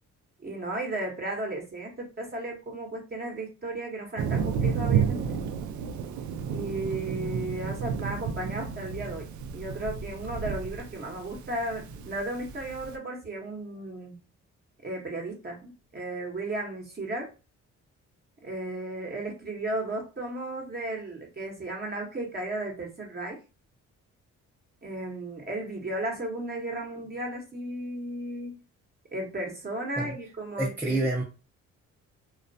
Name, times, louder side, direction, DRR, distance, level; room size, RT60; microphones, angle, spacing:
voice 1, 0.4-5.4 6.5-9.3 9.5-14.2 14.8-17.3 18.4-23.4 24.8-28.6 29.1-31.0, right 2 dB, 30° right, 0 dB, 0.8 m, -34 dB
Thunder, 4.2-12.9, right 7 dB, 75° right, 0.4 m, -31 dB
voice 2, 30.6-31.2, right 2 dB, 5° right, -3 dB, 0.5 m, -27 dB
2.3 x 2.1 x 2.6 m, 0.31 s
cardioid pair, 90°, 30 cm